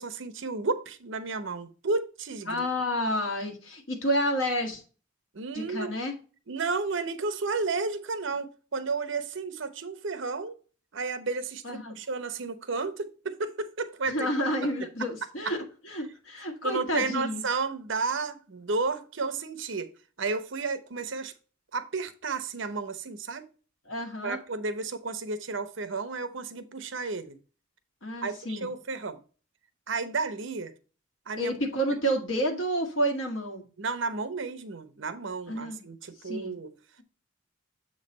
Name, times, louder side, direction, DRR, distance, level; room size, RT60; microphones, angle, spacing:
voice 1, 0.0-2.7 5.3-5.9 6.5-10.5 10.9-14.3 15.4-15.6 16.6-19.9 20.2-21.3 21.7-23.5 24.2-27.4 28.2-29.2 29.9-30.7 31.3-31.5 33.8-36.7, right 4 dB, 65° right, 0.8 m, -32 dB
voice 2, 2.5-4.8 5.5-6.1 11.6-12.0 14.1-17.4 23.9-24.4 28.0-28.7 31.4-33.6 35.5-35.8 36.2-36.5, equal, 75° left, 1.7 m, -30 dB
7.5 x 3.2 x 5.2 m
head